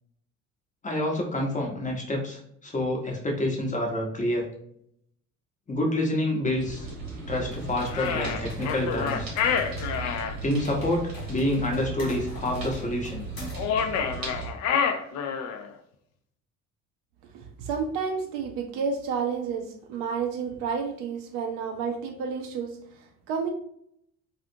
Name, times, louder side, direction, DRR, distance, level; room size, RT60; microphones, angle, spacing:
voice 1, 0.8-4.5 5.7-6.9 7.3-9.3 10.4-13.2, left 1 dB, 20° left, -1 dB, 0.8 m, -28 dB
sound 1, 6.6-14.5, right 4 dB, 70° right, 1.1 m, -37 dB
sound 2, 7.4-13.8, left 2 dB, 75° left, 0.8 m, -42 dB
sound 3, 7.9-10.3 13.5-15.7, left 7 dB, 45° left, 0.4 m, -28 dB
voice 2, 17.3-23.5, right 6 dB, 55° right, 3 dB, 0.5 m, -31 dB
2.4 x 2.4 x 2.6 m, 0.71 s
figure-of-eight pair, 55°, 40 cm